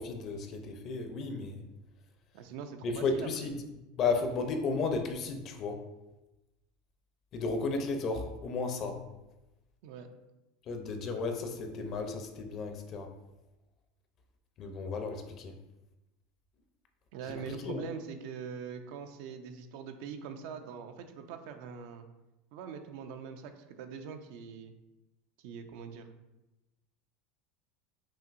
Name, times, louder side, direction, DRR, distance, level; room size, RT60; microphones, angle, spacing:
voice 1, 0.0-1.6 2.8-3.6 4.0-5.8 7.3-9.0 10.7-13.1 14.6-15.5 17.5-17.8, left 4 dB, 40° left, 6 dB, 0.6 m, -33 dB
voice 2, 2.3-3.5 9.8-10.1 17.1-22.1 22.5-24.7 25.4-26.1, right 6 dB, 70° right, 7 dB, 0.4 m, -43 dB
5.6 x 2.6 x 2.5 m, 1.0 s
supercardioid pair, 120°, 0 cm